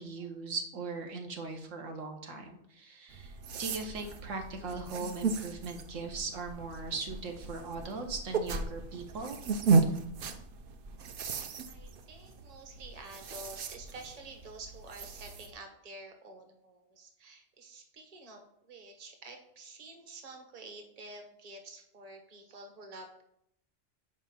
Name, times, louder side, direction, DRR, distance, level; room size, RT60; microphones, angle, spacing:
voice 1, 0.0-9.4, right 4 dB, 80° right, 4 dB, 1.3 m, -39 dB
sound 1, 3.1-15.5, right 4 dB, 55° right, 0.7 m, -34 dB
voice 2, 11.7-23.2, right 2 dB, 35° right, 4 dB, 1.0 m, -49 dB
5.3 x 5.0 x 5.7 m, 0.75 s
omnidirectional pair, 1.3 m